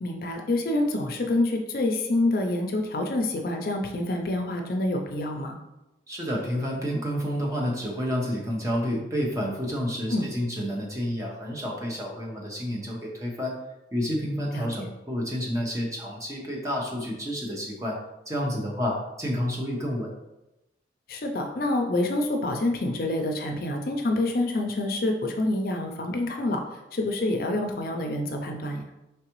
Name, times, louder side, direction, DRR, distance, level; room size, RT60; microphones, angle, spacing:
voice 1, 0.0-5.6 10.1-10.3 14.5-14.9 21.1-26.6 26.9-28.8, left 2 dB, 50° left, 3 dB, 0.5 m, -27 dB
voice 2, 6.1-13.6 13.9-18.0 18.3-20.1, equal, 15° right, -2 dB, 0.8 m, -29 dB
4.8 x 3.3 x 3.0 m, 0.95 s
head